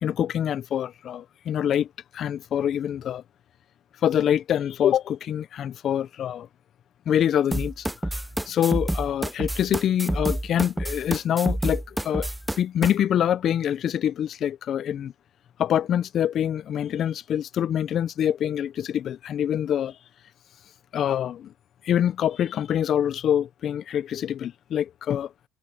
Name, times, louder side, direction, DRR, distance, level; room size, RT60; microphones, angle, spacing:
voice 1, 0.0-1.9 2.1-3.2 4.0-6.5 7.1-7.8 8.5-12.3 12.6-15.1 15.6-20.0 20.9-21.5 21.8-25.3, left 10 dB, 50° left, 0.8 m, -25 dB
sound 1, 7.5-12.9, right 1 dB, 5° right, 0.8 m, -28 dB
hypercardioid pair, 75°, 0 cm